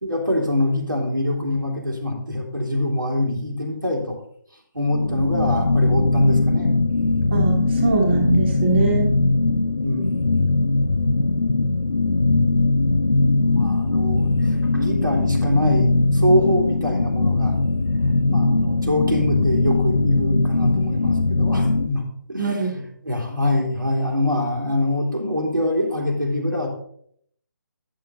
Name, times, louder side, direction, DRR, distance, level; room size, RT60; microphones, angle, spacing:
voice 1, 0.0-4.2 4.7-6.7 9.8-10.2 13.4-17.5 18.3-26.7, left 1 dB, 90° right, -1 dB, 2.5 m, -24 dB
sound 1, 4.8-21.9, left 3 dB, 85° left, 0.5 m, -20 dB
voice 2, 7.3-9.1 22.4-22.7, right 3 dB, 35° right, -1 dB, 1.6 m, -22 dB
8.7 x 7.0 x 3.9 m, 0.66 s
figure-of-eight pair, 150°, 10 cm